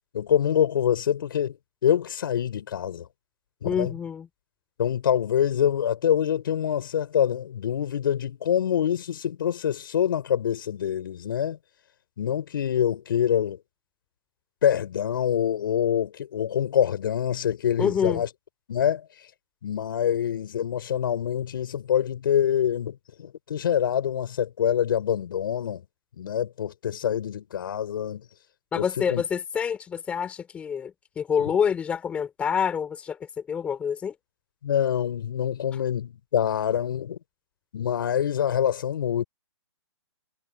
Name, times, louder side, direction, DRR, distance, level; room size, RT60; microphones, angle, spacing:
voice 1, 0.1-1.6 1.8-3.1 3.6-3.9 4.8-11.6 12.2-13.6 14.6-18.3 18.7-19.1 19.6-25.8 26.2-28.2 28.7-29.2 31.4-31.5 34.6-37.2 37.7-39.2, left 9 dB, 50° left, 6.3 m, -25 dB
voice 2, 3.6-4.3 17.8-18.2 28.7-34.1, left 7 dB, 10° left, 4.2 m, -27 dB
hypercardioid pair, 170°, 15 cm